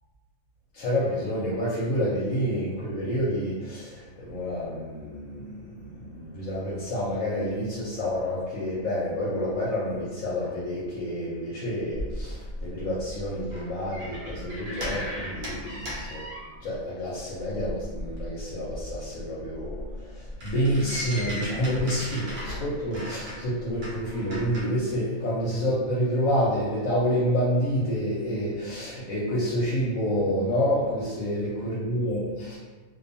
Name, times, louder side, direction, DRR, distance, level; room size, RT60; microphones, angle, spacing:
voice 1, 0.7-16.2 16.6-19.8 20.1-32.6, equal, 75° left, -8 dB, 1.0 m, -28 dB
sound 1, 11.9-16.9 17.2-24.6, equal, 55° right, 0.8 m, -37 dB
2.5 x 2.3 x 2.6 m, 1.4 s
omnidirectional pair, 1.4 m